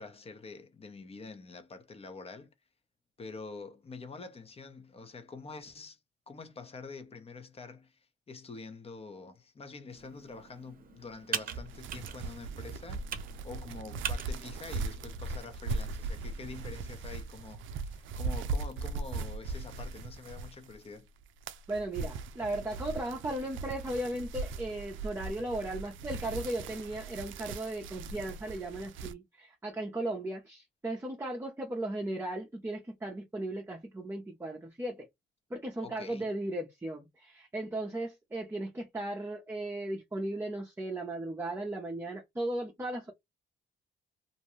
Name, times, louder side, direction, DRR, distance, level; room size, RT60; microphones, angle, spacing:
voice 1, 0.0-2.5 3.2-6.0 6.3-13.1 13.4-21.1 35.8-36.3, left 4 dB, 30° left, 0.8 m, -46 dB
Computer keyboard, 9.9-16.7, right 7 dB, 45° right, 0.7 m, -43 dB
sound 1, 11.5-20.9 21.2-29.1, right 3 dB, 80° right, 0.4 m, -39 dB
voice 2, 21.7-35.1 35.5-43.1, right 1 dB, 15° right, 0.7 m, -36 dB
2.6 x 2.2 x 3.0 m
cardioid pair, 90°, 20 cm